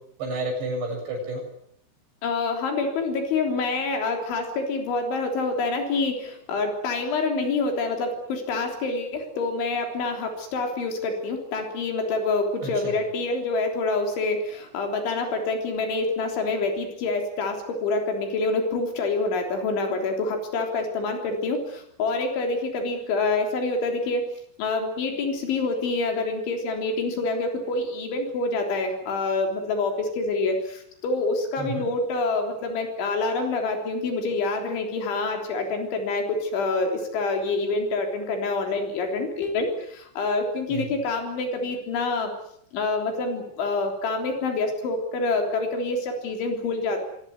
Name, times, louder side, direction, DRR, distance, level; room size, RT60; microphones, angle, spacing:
voice 1, 0.2-1.4 12.6-12.9 31.6-31.8 40.7-40.9, right 2 dB, 70° right, 4 dB, 9.6 m, -30 dB
voice 2, 2.2-24.3 24.6-42.3 42.7-47.0, left 3 dB, 80° left, 3 dB, 6.0 m, -27 dB
24.5 x 19.5 x 9.5 m, 0.72 s
omnidirectional pair, 5.3 m